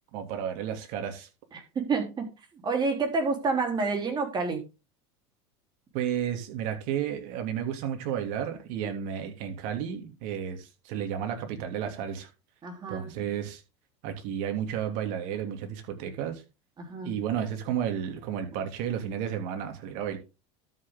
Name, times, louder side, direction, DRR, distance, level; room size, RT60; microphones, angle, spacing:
voice 1, 0.1-1.3 5.9-12.3 12.9-13.6 14.0-16.4 17.0-20.2, right 9 dB, 60° right, 2.7 m, -32 dB
voice 2, 1.5-2.3 2.6-4.6 12.6-13.3 16.8-17.2, right 4 dB, 30° right, 3.6 m, -29 dB
12.5 x 6.5 x 3.7 m
supercardioid pair, 105°, 14 cm